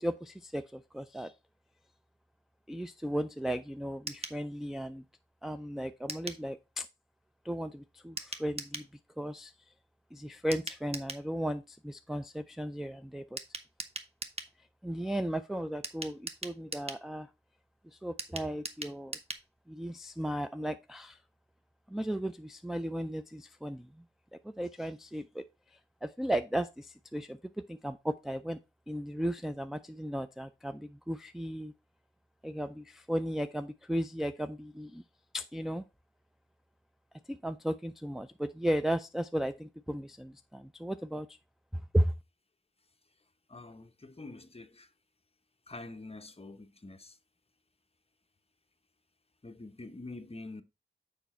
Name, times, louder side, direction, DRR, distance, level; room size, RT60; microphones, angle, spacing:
voice 1, 0.0-1.3 2.7-5.0 5.4-6.9 7.4-8.9 9.2-9.5 10.1-13.4 14.8-17.3 17.8-19.2 19.7-21.2 21.9-24.0 24.3-25.4 25.7-27.4 27.7-28.6 28.9-31.7 32.4-35.0 35.3-35.8 37.3-41.4 41.7-42.1, equal, ahead, 0.3 m, -35 dB
sound 1, 4.1-4.4 6.1-6.4 8.2-8.9 10.5-11.3 13.4-14.5 15.8-17.0 18.2-19.5 19.8-19.9 20.1-20.2, right 2 dB, 30° right, 1.0 m, -41 dB
voice 2, 43.5-44.9 45.7-47.2 49.4-50.6, left 2 dB, 30° left, 0.8 m, -46 dB
7.0 x 5.0 x 4.2 m
wide cardioid pair, 80°, 21 cm